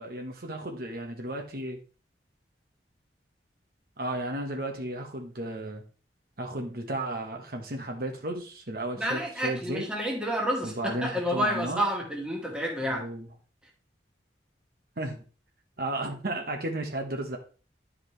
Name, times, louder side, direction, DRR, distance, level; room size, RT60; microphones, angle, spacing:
voice 1, 0.0-1.8 4.0-5.8 6.4-9.9 10.6-11.9 12.9-13.3 15.0-15.2 15.8-17.4, right 1 dB, 55° right, 1.2 m, -34 dB
voice 2, 8.9-13.1, equal, 5° right, 1.7 m, -29 dB
10.5 x 5.0 x 3.2 m
head